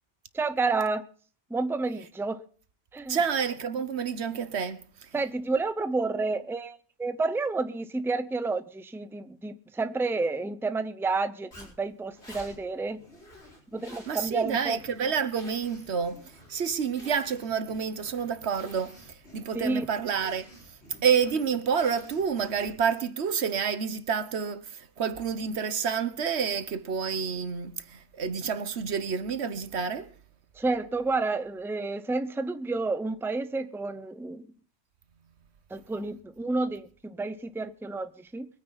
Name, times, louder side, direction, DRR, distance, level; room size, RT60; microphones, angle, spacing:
voice 1, 0.3-1.1 1.5-2.4 2.9-3.2 5.1-13.0 13.7-14.8 19.5-19.8 30.5-34.5 35.7-38.5, right 3 dB, 5° right, 0.7 m, -30 dB
voice 2, 3.1-4.8 14.1-16.2 16.5-19.0 19.3-20.5 21.0-30.1, right 6 dB, 80° right, 1.3 m, -29 dB
Zipper (clothing), 11.5-23.0, left 1 dB, 85° left, 5.5 m, -51 dB
23.0 x 9.5 x 4.0 m
omnidirectional pair, 1.1 m